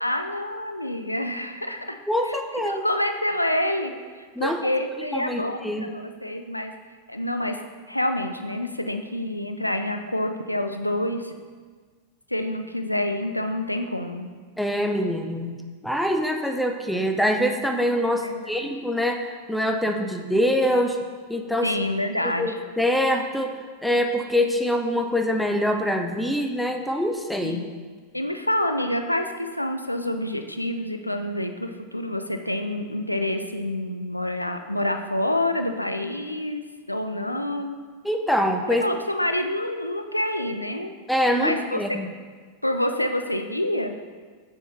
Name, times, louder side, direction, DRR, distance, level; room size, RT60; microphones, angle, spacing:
voice 1, 0.0-2.0 2.3-2.4 2.7-6.7 7.1-7.6 7.9-11.4 12.3-14.3 18.2-18.5 21.6-22.6 27.4-27.7 28.1-37.8 38.7-40.9 41.4-42.0 42.6-44.0, left 1 dB, 85° left, 7 dB, 0.3 m, -27 dB
voice 2, 2.1-2.8 4.4-4.6 5.1-5.9 14.6-15.6 15.8-21.0 21.3-21.7 22.4-23.5 23.8-27.6 38.0-38.8 41.1-42.1, equal, ahead, 5 dB, 0.5 m, -24 dB
6.9 x 3.6 x 4.1 m, 1.5 s
figure-of-eight pair, 90°, 0 cm